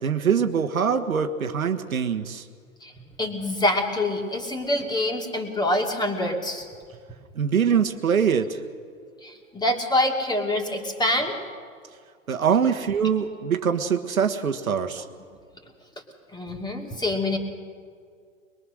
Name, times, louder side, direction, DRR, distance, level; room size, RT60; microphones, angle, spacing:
voice 1, 0.0-2.4 7.3-8.6 12.3-15.0, right 7 dB, 85° right, 6 dB, 1.5 m, -23 dB
voice 2, 3.2-6.7 9.2-11.4 16.3-17.4, left 1 dB, 10° left, 3 dB, 2.6 m, -25 dB
22.0 x 22.0 x 6.4 m, 2.1 s
hypercardioid pair, 115°, 41 cm